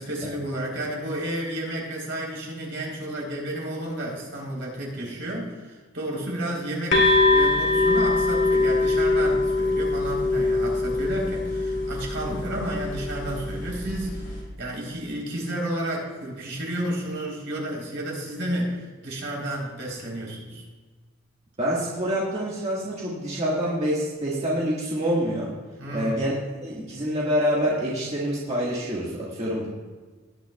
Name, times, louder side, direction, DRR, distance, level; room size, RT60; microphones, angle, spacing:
voice 1, 0.0-20.6 25.8-26.2, right 1 dB, 65° right, -2 dB, 3.7 m, -31 dB
sound 1, 6.9-14.4, left 2 dB, 60° left, 2.5 m, -23 dB
voice 2, 21.6-25.5 25.9-26.3 26.6-29.7, equal, 30° right, -6 dB, 1.7 m, -26 dB
18.5 x 10.0 x 2.3 m, 1.4 s
head